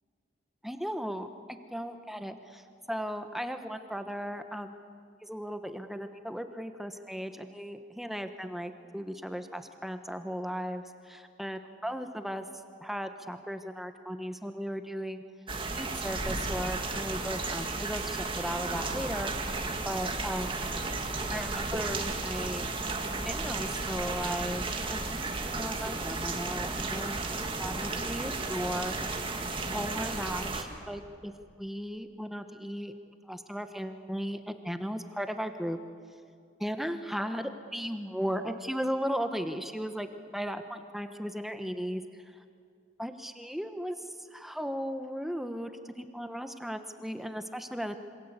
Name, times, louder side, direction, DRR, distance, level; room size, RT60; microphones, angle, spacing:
voice 1, 0.6-1.3 1.7-4.7 5.2-12.4 12.8-15.2 15.7-19.6 19.8-20.5 21.3-22.7 23.2-29.1 29.7-31.3 31.6-32.9 33.2-35.8 36.6-40.1 40.3-42.0 43.0-45.7 46.0-48.0, equal, ahead, 8 dB, 1.1 m, -36 dB
sound 1, 15.5-30.6, right 3 dB, 25° right, 1.9 m, -33 dB
27.0 x 25.5 x 8.2 m, 2.3 s
head